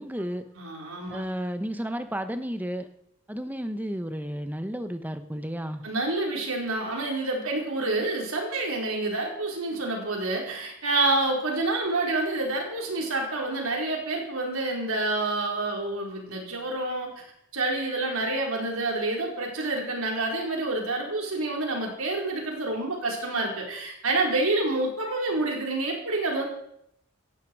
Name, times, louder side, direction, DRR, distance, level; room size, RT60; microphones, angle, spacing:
voice 1, 0.0-0.4 1.1-2.9 3.3-5.8, equal, 10° right, 9 dB, 0.9 m, -32 dB
voice 2, 0.6-1.2 5.8-17.1 17.5-26.5, right 2 dB, 85° right, 0 dB, 4.6 m, -28 dB
17.0 x 15.5 x 4.8 m, 0.75 s
head